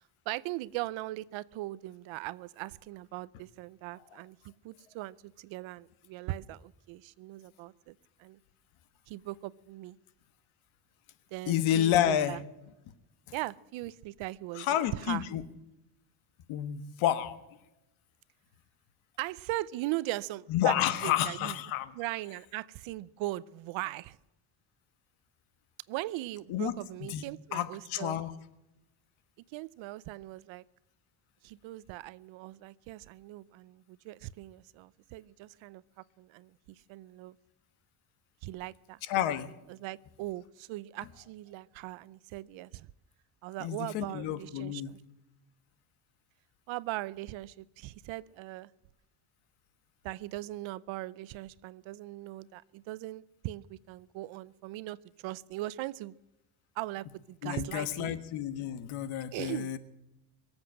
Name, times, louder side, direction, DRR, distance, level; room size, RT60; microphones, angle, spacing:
voice 1, 0.3-7.9 8.2-8.4 9.1-10.0 11.3-12.4 13.3-14.7 14.9-15.2 19.2-21.6 21.9-24.2 25.9-28.2 29.5-30.6 31.4-35.8 36.2-37.4 38.4-39.0 39.7-42.9 43.4-45.0 46.7-48.7 50.0-56.1 56.8-58.2 59.3-59.8, right 17 dB, 70° right, 20 dB, 0.7 m, -39 dB
voice 2, 11.5-12.4 14.5-15.4 16.5-17.4 20.5-21.9 26.5-26.7 27.1-27.2 27.5-28.3 39.1-39.5 43.6-44.9 57.4-59.8, left 11 dB, 75° left, 12 dB, 1.4 m, -30 dB
23.0 x 8.1 x 7.7 m, 0.94 s
cardioid pair, 145°, 48 cm